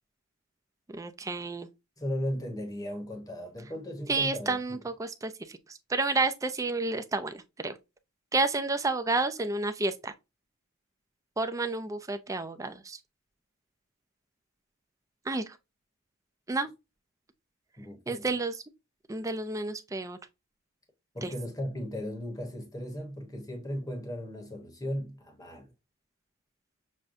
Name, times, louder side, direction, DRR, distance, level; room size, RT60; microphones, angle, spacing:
voice 1, 0.9-1.7 4.1-7.7 8.3-10.1 11.4-13.0 15.3-15.4 16.5-16.7 18.1-18.6 19.1-20.2 21.2-21.3, right 3 dB, 15° right, 0.4 m, -30 dB
voice 2, 2.0-4.8 17.8-18.3 21.1-25.7, equal, 15° left, 1.0 m, -36 dB
6.3 x 2.2 x 2.5 m
head